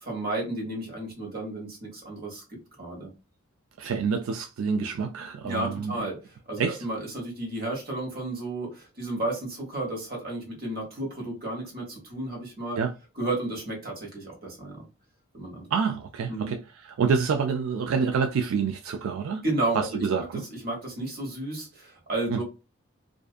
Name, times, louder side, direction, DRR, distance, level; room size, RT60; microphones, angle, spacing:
voice 1, 0.0-3.1 5.4-6.2 6.5-12.8 13.2-14.8 15.3-15.7 16.3-16.5 19.4-20.1 20.6-22.4, right 2 dB, 45° right, 1.3 m, -32 dB
voice 2, 3.8-5.9 6.6-6.9 12.8-12.9 15.7-19.4 19.7-20.4 22.3-22.4, right 6 dB, 85° right, 0.3 m, -27 dB
2.6 x 2.3 x 2.4 m
head